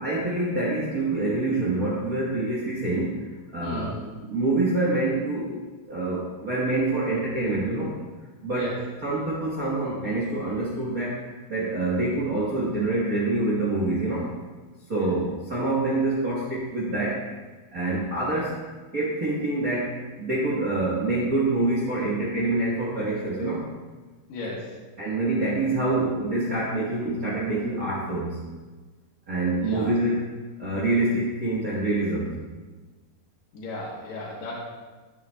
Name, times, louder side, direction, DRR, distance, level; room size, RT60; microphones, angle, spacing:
voice 1, 0.0-3.9 4.3-5.6 5.9-7.9 8.4-8.7 9.0-14.3 14.9-17.2 17.7-18.5 18.9-23.7 25.0-28.4 29.3-30.3 30.6-32.3, right 2 dB, 50° right, -7 dB, 1.0 m, -26 dB
voice 2, 3.6-4.1 8.5-8.8 14.9-15.1 24.3-24.8 29.6-29.9 33.5-34.6, left 2 dB, 75° left, -4 dB, 2.5 m, -35 dB
10.0 x 7.1 x 2.2 m, 1.3 s
omnidirectional pair, 3.3 m